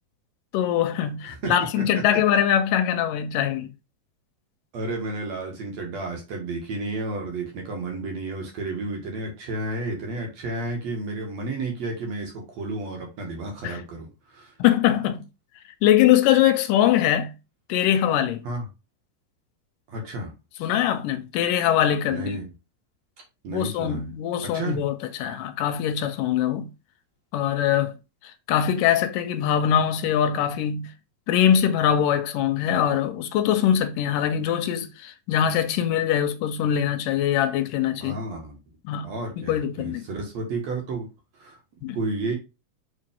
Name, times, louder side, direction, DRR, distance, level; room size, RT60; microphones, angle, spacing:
voice 1, 0.5-3.7 13.6-13.8 14.6-15.3 15.8-17.3 17.7-18.4 20.6-22.4 23.5-26.7 27.3-27.9 28.5-30.9 31.3-38.2 38.8-39.1 39.4-40.1 41.8-42.0, left 10 dB, 80° left, 2.4 m, -22 dB
voice 2, 1.2-1.8 4.7-14.5 18.4-18.7 19.9-20.3 22.1-22.5 23.4-24.1 24.5-24.8 38.0-38.6 39.0-41.1 41.4-41.6 41.9-42.3, right 2 dB, 55° right, 2.7 m, -32 dB
7.2 x 3.9 x 3.7 m
omnidirectional pair, 3.8 m